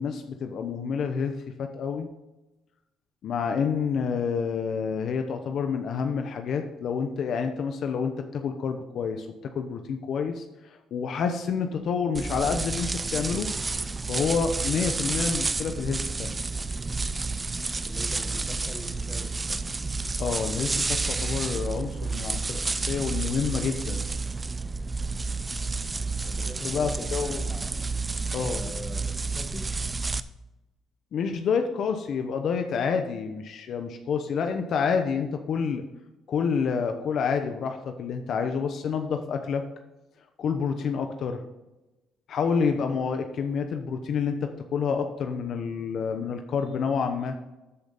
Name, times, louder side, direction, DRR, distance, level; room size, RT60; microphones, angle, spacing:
voice 1, 0.0-2.1 3.2-13.5 14.1-16.3 20.2-24.1 26.6-27.4 28.3-28.6 31.1-35.8 36.3-39.6 40.4-41.4 42.3-47.4, left 6 dB, 60° left, 6 dB, 0.9 m, -28 dB
sound 1, 12.1-30.2, right 3 dB, 20° right, 0.5 m, -30 dB
voice 2, 17.8-19.6 26.2-27.7 28.4-29.0 29.3-29.6 42.6-42.9, left 2 dB, 15° left, 4 dB, 1.4 m, -42 dB
12.5 x 5.2 x 4.1 m, 1.0 s
cardioid pair, 110°, 0 cm